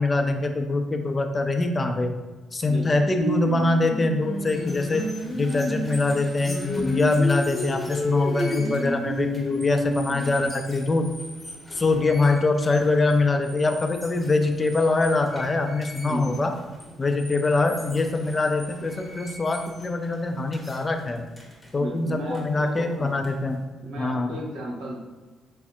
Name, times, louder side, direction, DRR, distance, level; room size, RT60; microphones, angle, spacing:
voice 1, 0.0-2.1 2.5-5.0 5.3-11.1 11.7-16.5 17.0-21.3 21.7-23.6 24.0-24.3, left 3 dB, 30° left, 5 dB, 0.3 m, -23 dB
voice 2, 2.6-3.1 16.0-16.4 21.8-23.2 23.8-25.0, right 1 dB, 85° right, -2 dB, 0.8 m, -34 dB
Singing, 3.2-10.5, equal, 55° left, 0.7 m, -29 dB
sound 1, 4.4-23.6, equal, 5° left, 0.8 m, -44 dB
4.1 x 2.5 x 2.3 m, 1.3 s
cardioid pair, 90°, 0 cm